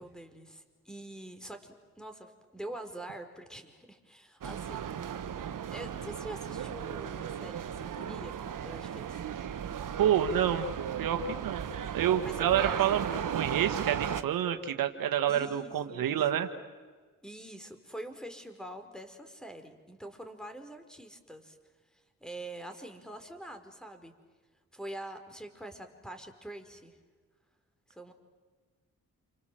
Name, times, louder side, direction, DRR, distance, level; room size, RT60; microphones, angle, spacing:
voice 1, 0.0-4.9 5.7-9.3 11.8-11.9 12.2-13.0 15.3-16.4 17.2-21.6 21.9-24.1 24.7-27.0 27.9-28.1, right 1 dB, ahead, 7 dB, 4.7 m, -45 dB
sound 1, 4.4-14.2, right 8 dB, 70° right, 1.5 m, -36 dB
voice 2, 10.0-10.7 11.0-11.7 11.9-16.5, right 10 dB, 85° right, 8 dB, 1.7 m, -28 dB
29.5 x 25.0 x 7.7 m, 1.5 s
cardioid pair, 55°, 33 cm